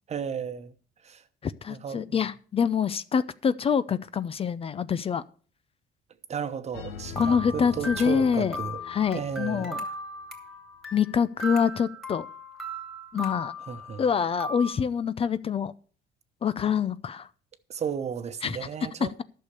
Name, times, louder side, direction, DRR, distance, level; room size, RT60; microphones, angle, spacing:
voice 1, 0.1-0.7 1.0-1.2 1.7-2.2 6.3-8.8 9.1-9.8 13.6-14.0 17.7-19.1, right 7 dB, 40° right, 1.0 m, -34 dB
voice 2, 1.4-5.2 7.2-8.6 8.9-9.8 10.9-12.3 13.1-13.5 14.0-15.7 16.4-17.3 18.4-18.6, left 7 dB, 35° left, 0.5 m, -26 dB
sound 1, 6.7-9.7, left 4 dB, 85° left, 1.4 m, -41 dB
sound 2, 7.2-14.7, equal, ahead, 2.7 m, -38 dB
11.5 x 6.6 x 6.8 m
cardioid pair, 110°, 17 cm